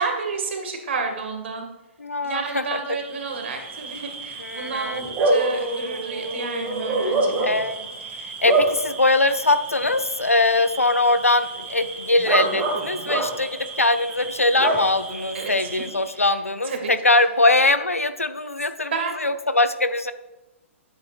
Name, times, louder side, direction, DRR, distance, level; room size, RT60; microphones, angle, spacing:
voice 1, 0.0-1.7 2.2-7.6 15.3-15.7 16.1-16.3 16.6-16.9 18.9-19.3, right 4 dB, 55° right, 3 dB, 1.9 m, -30 dB
voice 2, 2.0-2.8 4.4-5.0 7.4-7.9 8.2-18.9 19.2-20.1, left 2 dB, 85° left, 11 dB, 0.6 m, -22 dB
Bark / Cricket, 2.9-16.2, right 2 dB, 20° right, 2.1 m, -28 dB
11.5 x 8.4 x 2.5 m, 1.0 s
figure-of-eight pair, 120°, 7 cm